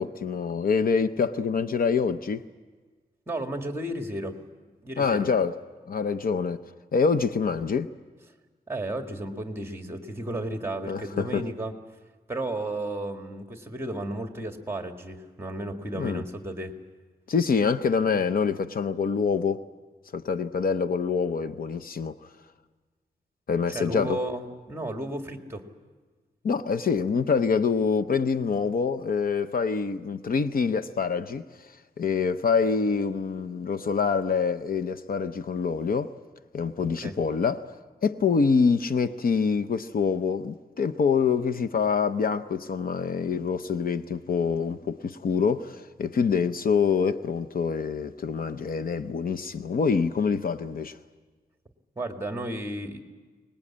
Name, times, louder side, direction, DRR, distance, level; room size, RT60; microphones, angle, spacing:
voice 1, 0.0-2.4 5.0-5.5 5.9-6.6 6.9-7.9 10.9-11.4 16.0-16.2 17.3-19.7 20.1-22.2 23.5-24.2 26.4-31.4 32.0-36.1 36.5-37.7 38.0-51.0, left 5 dB, 60° left, 0.7 m, -25 dB
voice 2, 3.3-4.4 4.8-5.3 8.7-11.7 12.3-16.7 23.7-25.7 37.0-37.2 52.0-53.0, right 1 dB, 15° right, 1.8 m, -33 dB
24.0 x 20.0 x 8.6 m
wide cardioid pair, 155°, 17 cm